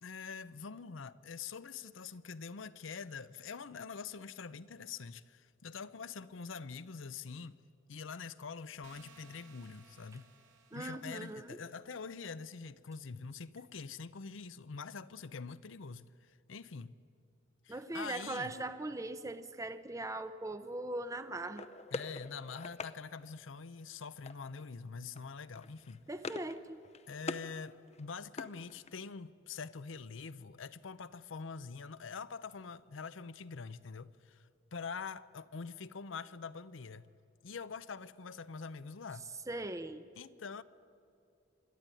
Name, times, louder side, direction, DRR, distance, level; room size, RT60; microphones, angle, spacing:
voice 1, 0.0-7.6 7.9-10.3 10.7-16.9 17.6-18.5 21.9-26.0 27.1-37.1 37.4-39.3 40.2-40.6, left 5 dB, 75° left, 0.7 m, -45 dB
sound 1, 8.8-11.7, right 5 dB, 80° right, 2.0 m, -61 dB
voice 2, 10.7-11.6 17.7-21.7 26.1-26.8 39.5-40.1, right 2 dB, 15° right, 0.7 m, -40 dB
sound 2, 21.5-23.0 24.3-24.7 24.9-25.2 25.5-26.6 26.8-27.5 27.9-29.1, left 3 dB, 35° left, 0.7 m, -44 dB
26.5 x 12.0 x 9.8 m
head